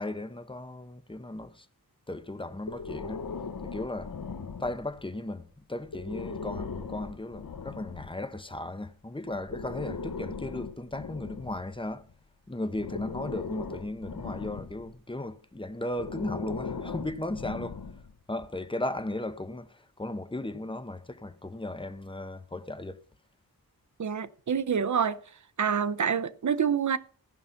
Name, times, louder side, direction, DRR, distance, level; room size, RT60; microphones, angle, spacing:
voice 1, 0.0-1.7 2.1-3.3 3.6-4.2 4.6-12.1 12.5-17.8 18.3-23.0, left 1 dB, 15° left, 0.9 m, -36 dB
Breathing, 2.6-5.1 5.8-8.2 9.3-12.1 12.7-15.0 15.9-18.2, left 5 dB, 65° left, 1.0 m, -39 dB
voice 2, 24.0-25.2 25.6-27.0, right 7 dB, 50° right, 0.7 m, -27 dB
15.5 x 5.6 x 5.7 m
wide cardioid pair, 100°, 37 cm